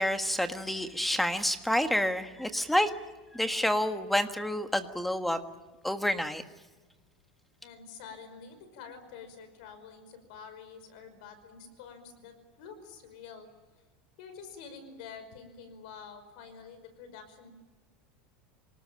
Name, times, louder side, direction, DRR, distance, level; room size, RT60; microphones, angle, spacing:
voice 1, 0.0-2.9 3.3-5.4 5.8-6.4, left 1 dB, 5° left, 7 dB, 1.6 m, -28 dB
voice 2, 7.6-13.5 14.2-17.5, left 6 dB, 70° left, 10 dB, 5.4 m, -48 dB
27.5 x 19.0 x 8.9 m, 1.2 s
supercardioid pair, 145°, 5 cm